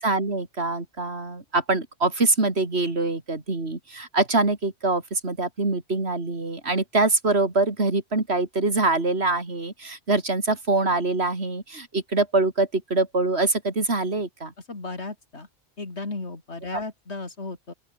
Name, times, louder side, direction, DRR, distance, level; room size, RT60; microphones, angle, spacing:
voice 1, 0.0-14.5 16.7-16.8, right 3 dB, 70° right, 3.8 m, -24 dB
voice 2, 14.7-15.5 15.8-17.7, left 3 dB, 85° left, 3.5 m, -35 dB
open air
omnidirectional pair, 1.1 m